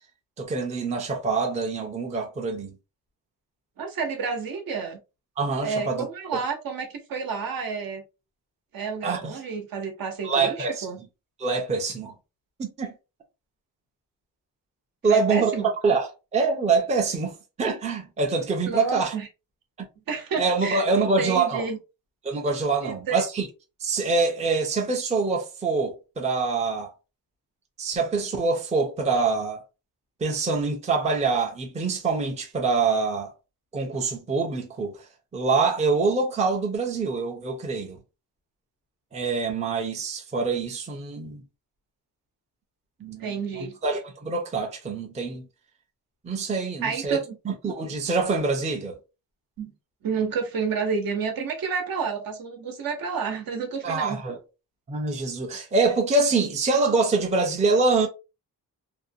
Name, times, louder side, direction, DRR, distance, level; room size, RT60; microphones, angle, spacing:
voice 1, 0.4-2.7 5.4-6.1 6.3-6.4 9.0-9.4 10.2-11.1 11.4-12.1 12.6-12.9 15.0-19.1 19.8-19.9 20.4-21.7 22.2-23.5 23.8-26.9 27.8-29.6 30.2-33.3 33.7-35.1 35.3-38.0 39.1-41.4 43.0-45.5 46.2-49.0 53.8-54.4 54.9-58.1, right 4 dB, 20° right, 0.5 m, -25 dB
voice 2, 3.8-5.0 5.6-8.0 8.7-11.0 15.1-15.7 18.6-19.3 20.1-21.8 22.8-23.2 43.2-43.8 46.8-47.4 49.6-49.7 50.0-54.2, right 5 dB, 65° right, 0.9 m, -30 dB
2.6 x 2.1 x 2.6 m
wide cardioid pair, 150°, 37 cm